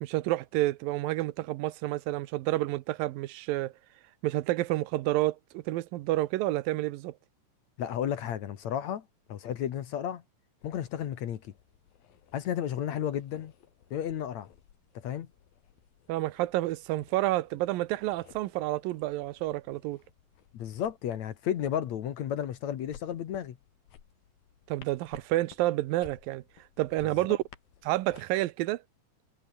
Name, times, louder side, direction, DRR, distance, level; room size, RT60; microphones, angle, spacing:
voice 1, 0.0-3.7 4.2-7.1 16.1-20.0 24.7-26.4 26.8-27.4 27.8-28.8, right 17 dB, 85° right, 2.5 m, -29 dB
voice 2, 7.8-10.2 10.6-11.4 12.3-13.5 13.9-14.5 14.9-15.3 20.5-23.6, left 10 dB, 60° left, 2.4 m, -33 dB
sound 1, 10.6-28.2, left 9 dB, 85° left, 4.0 m, -58 dB
omnidirectional pair, 4.0 m